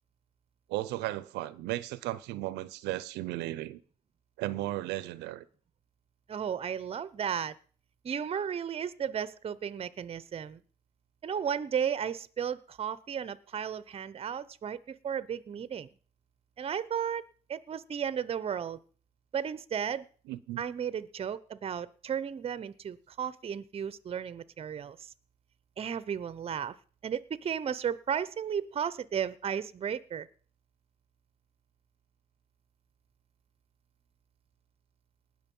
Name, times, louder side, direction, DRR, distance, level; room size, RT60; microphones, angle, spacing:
voice 1, 0.7-3.8 4.4-5.5 20.3-20.6, right 16 dB, 90° right, 0.7 m, -35 dB
voice 2, 6.3-7.5 8.0-10.6 11.2-15.9 16.6-17.2 17.5-18.8 19.3-20.1 20.6-25.1 25.8-26.8 27.0-30.3, right 8 dB, 35° right, 0.8 m, -34 dB
19.0 x 6.5 x 5.4 m
cardioid pair, 110°, 17 cm